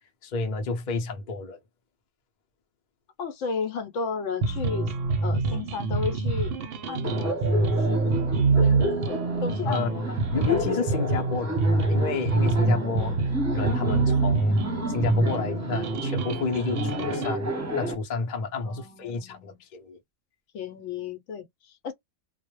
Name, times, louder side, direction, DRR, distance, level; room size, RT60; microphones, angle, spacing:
voice 1, 0.2-1.6 9.6-10.0 10.3-14.6 14.9-20.0, left 4 dB, 45° left, 0.6 m, -30 dB
voice 2, 3.2-4.9 5.2-6.5 6.9-10.2 18.6-19.6 20.5-21.9, left 5 dB, 70° left, 0.9 m, -34 dB
sound 1, 4.4-17.4, right 3 dB, 60° right, 0.7 m, -25 dB
Laughter, 7.0-17.9, equal, 15° right, 0.7 m, -32 dB
2.2 x 2.0 x 2.9 m
omnidirectional pair, 1.4 m